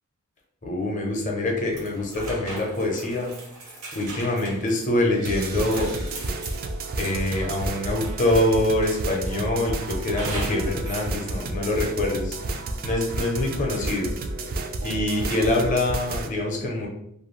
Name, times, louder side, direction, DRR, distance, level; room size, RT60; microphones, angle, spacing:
voice 1, 0.6-3.3 3.9-6.1 7.0-12.4 12.8-14.1 14.8-16.9, left 1 dB, 35° left, 0 dB, 0.6 m, -25 dB
sound 1, 1.7-8.4 8.8-9.4 10.2-11.1, right 2 dB, 85° right, 1.0 m, -39 dB
sound 2, 5.2-16.3, right 2 dB, 45° right, 0.3 m, -31 dB
2.6 x 2.3 x 3.0 m, 0.74 s
head